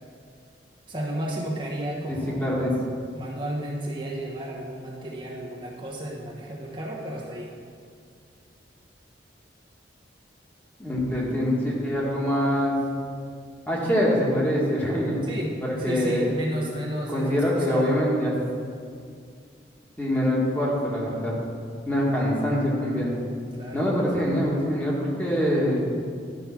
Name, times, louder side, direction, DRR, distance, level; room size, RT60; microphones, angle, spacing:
voice 1, 0.9-2.5 3.1-7.5 15.2-18.0 23.5-23.9, right 1 dB, 30° right, -5 dB, 1.2 m, -32 dB
voice 2, 2.1-2.7 10.8-12.8 13.7-15.2 15.8-16.3 17.1-18.3 20.0-21.3 21.9-23.1 23.7-25.8, equal, 10° left, -5 dB, 1.9 m, -24 dB
12.5 x 5.4 x 5.9 m, 2.2 s
head